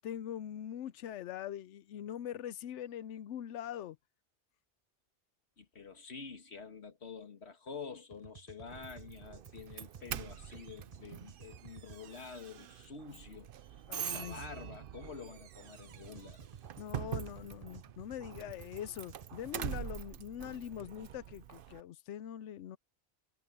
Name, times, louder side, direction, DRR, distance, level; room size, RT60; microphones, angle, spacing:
voice 1, 0.0-4.0 13.9-14.4 16.8-22.8, left 10 dB, 90° left, 0.9 m, -43 dB
voice 2, 5.6-13.5 14.0-16.5, left 5 dB, 65° left, 2.2 m, -48 dB
sound 1, 8.1-12.0 15.9-19.8, right 6 dB, 35° right, 1.0 m, -54 dB
Doorbell, 8.7-21.8, right 10 dB, 60° right, 0.7 m, -45 dB
omnidirectional pair, 1.2 m